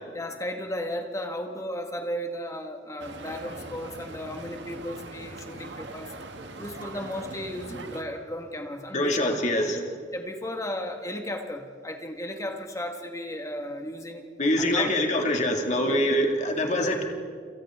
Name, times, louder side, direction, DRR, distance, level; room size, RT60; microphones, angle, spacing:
voice 1, 0.1-6.1 6.6-9.4 10.1-14.3 14.6-14.9 15.9-16.0, left 1 dB, 15° left, 4 dB, 1.8 m, -35 dB
sound 1, 3.0-8.0, right 2 dB, 70° right, 1.6 m, -41 dB
voice 2, 8.9-9.8 14.4-17.0, left 1 dB, 40° left, 3 dB, 2.3 m, -24 dB
29.0 x 27.0 x 3.8 m, 2.1 s
head